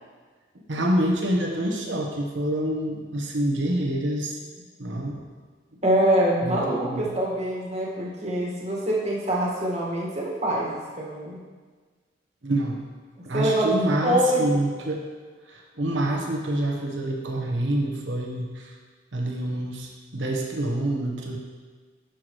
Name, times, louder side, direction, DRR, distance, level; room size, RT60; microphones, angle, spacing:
voice 1, 0.7-4.4 4.8-5.2 6.4-6.6 6.8-7.1 12.4-12.9 13.2-15.0 15.5-18.7 19.1-21.4, right 1 dB, 75° right, 0 dB, 1.1 m, -27 dB
voice 2, 5.8-11.4 13.2-14.5, right 1 dB, 35° right, -4 dB, 1.7 m, -25 dB
11.5 x 5.9 x 3.2 m, 1.5 s
head